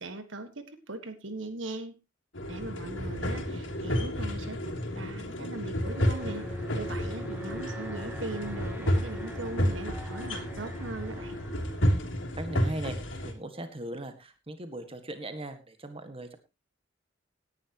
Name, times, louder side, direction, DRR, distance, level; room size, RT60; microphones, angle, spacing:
voice 1, 0.0-2.0 2.5-6.5 6.7-11.4, right 2 dB, 85° right, 9 dB, 1.7 m, -39 dB
sound 1, 2.3-13.3, equal, 85° left, 3.1 m, -31 dB
Alarm, 5.8-12.9, right 1 dB, 10° right, 2.5 m, -44 dB
voice 2, 12.4-13.0 13.2-16.4, right 1 dB, 30° right, 8 dB, 1.8 m, -39 dB
18.0 x 11.0 x 3.0 m, 0.25 s
head